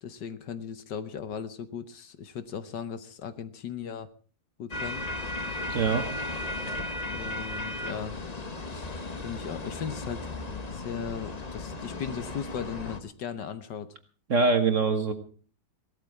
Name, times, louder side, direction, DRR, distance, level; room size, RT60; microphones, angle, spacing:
voice 1, 0.0-4.1 4.6-5.0 7.1-8.2 8.7-8.9 9.2-13.9, left 7 dB, 65° left, 12 dB, 1.6 m, -37 dB
sound 1, 4.7-13.0, left 2 dB, 25° left, 1.0 m, -35 dB
voice 2, 5.7-6.1 14.3-15.1, right 4 dB, 40° right, 8 dB, 1.5 m, -23 dB
18.0 x 13.0 x 4.7 m, 0.42 s
omnidirectional pair, 2.2 m